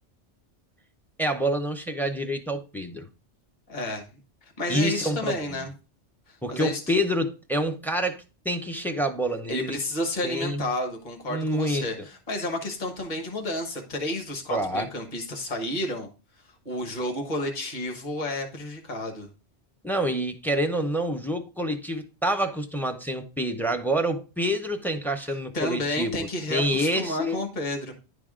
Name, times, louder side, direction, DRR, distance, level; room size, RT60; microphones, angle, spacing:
voice 1, 1.2-3.0 4.7-5.4 6.4-9.8 10.2-10.7 11.3-11.9 14.5-14.9 19.8-27.4, equal, 5° left, 0.4 m, -27 dB
voice 2, 3.7-4.0 4.4-5.7 6.3-6.8 9.5-16.1 16.6-19.3 25.3-27.9, left 1 dB, 40° left, 1.4 m, -31 dB
10.5 x 3.5 x 3.7 m
omnidirectional pair, 1.2 m